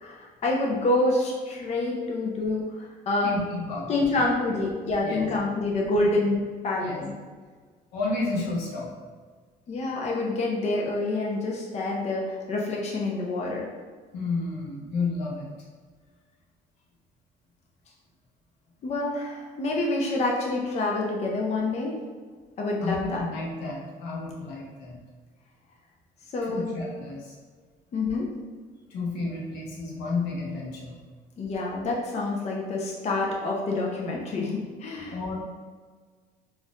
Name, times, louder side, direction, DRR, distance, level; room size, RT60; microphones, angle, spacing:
voice 1, 0.0-3.3 3.9-7.1 9.7-13.7 18.8-22.0 22.6-23.2 26.3-26.6 27.9-28.3 31.4-35.2, left 2 dB, 40° left, -2 dB, 0.6 m, -27 dB
voice 2, 3.2-4.2 5.0-5.3 6.8-7.0 7.9-9.0 14.1-15.5 22.8-25.0 26.4-27.4 28.9-31.0 35.1-35.4, left 3 dB, 85° left, -4 dB, 0.9 m, -31 dB
4.1 x 2.5 x 2.4 m, 1.5 s
cardioid pair, 110°, 17 cm